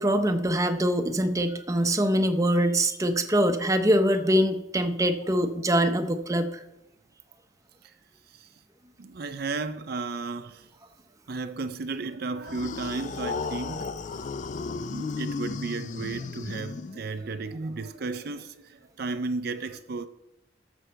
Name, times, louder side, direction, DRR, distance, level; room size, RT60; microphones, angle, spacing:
voice 1, 0.0-6.6, equal, 15° right, 0.7 m, -24 dB
voice 2, 9.0-10.7 11.3-13.9 14.9-20.1, right 3 dB, 55° right, 0.5 m, -34 dB
sound 1, 12.4-17.3, left 4 dB, 40° left, 0.3 m, -34 dB
13.5 x 6.1 x 4.5 m
head